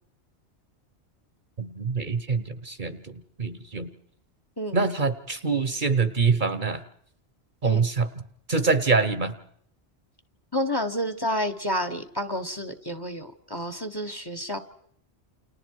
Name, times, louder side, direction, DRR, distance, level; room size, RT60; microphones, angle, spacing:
voice 1, 1.6-3.9 4.7-6.8 7.6-8.1 8.5-9.3, right 4 dB, 45° right, 12 dB, 1.2 m, -25 dB
voice 2, 10.5-14.6, equal, 20° left, 9 dB, 1.3 m, -30 dB
29.5 x 29.0 x 4.7 m, 0.67 s
omnidirectional pair, 1.1 m